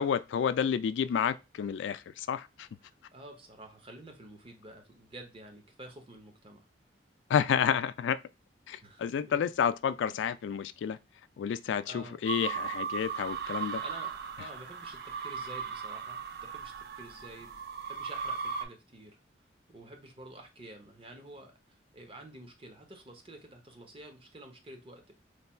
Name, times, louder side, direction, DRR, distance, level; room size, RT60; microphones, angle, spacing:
voice 1, 0.0-2.7 7.3-8.2 8.7-11.0 11.4-13.8, left 7 dB, 80° left, 0.3 m, -30 dB
voice 2, 2.8-6.7 8.8-9.4 11.9-12.2 13.8-17.5 17.9-19.2 19.7-25.1, right 1 dB, 30° right, 0.8 m, -49 dB
sound 1, 12.3-18.7, right 6 dB, 60° right, 0.6 m, -37 dB
3.2 x 2.2 x 4.2 m
head